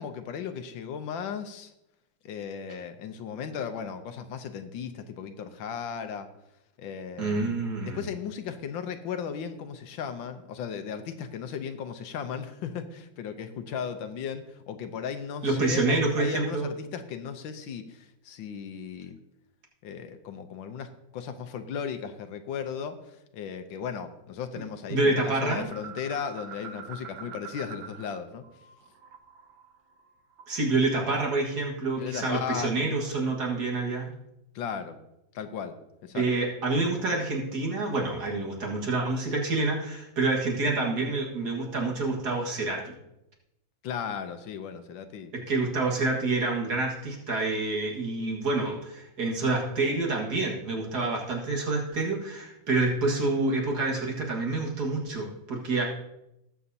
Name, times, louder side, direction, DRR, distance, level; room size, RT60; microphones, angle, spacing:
voice 1, 0.0-1.7 2.2-6.3 6.8-7.6 7.9-19.2 19.8-28.4 32.0-32.9 34.5-35.0 35.3-35.7 36.0-36.3 43.8-45.3, left 7 dB, 80° left, 8 dB, 1.5 m, -36 dB
voice 2, 7.2-8.0 15.4-16.7 24.9-25.7 30.5-34.1 36.1-42.9 45.3-55.8, right 3 dB, 55° right, -1 dB, 2.3 m, -27 dB
sound 1, 25.6-28.2 28.4-30.7, right 7 dB, 90° right, 1.7 m, -45 dB
19.0 x 7.0 x 2.8 m, 0.87 s
omnidirectional pair, 2.1 m